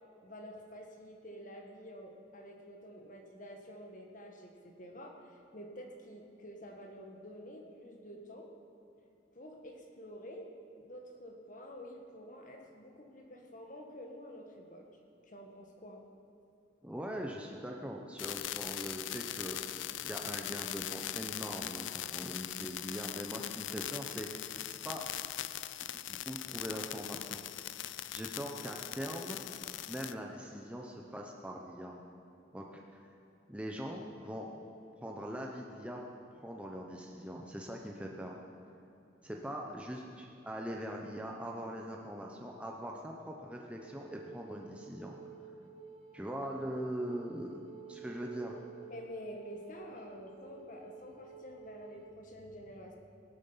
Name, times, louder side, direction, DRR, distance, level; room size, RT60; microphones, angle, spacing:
voice 1, 0.2-8.5 9.3-10.5 10.8-14.9 15.3-16.0 48.9-53.0, equal, 45° left, 2 dB, 1.6 m, -49 dB
voice 2, 16.8-25.0 26.3-27.4 28.1-29.4 29.9-32.0 32.5-33.1 33.5-34.5 35.0-36.0 36.3-38.3 39.2-45.1 46.1-47.6 47.9-48.6, equal, 5° right, 0 dB, 0.9 m, -42 dB
sound 1, 18.2-30.1, left 13 dB, 80° left, 0.4 m, -41 dB
Wind instrument woodwind instrument, 43.7-52.2, right 6 dB, 35° right, 1.5 m, -52 dB
17.0 x 12.5 x 5.7 m, 2.7 s
head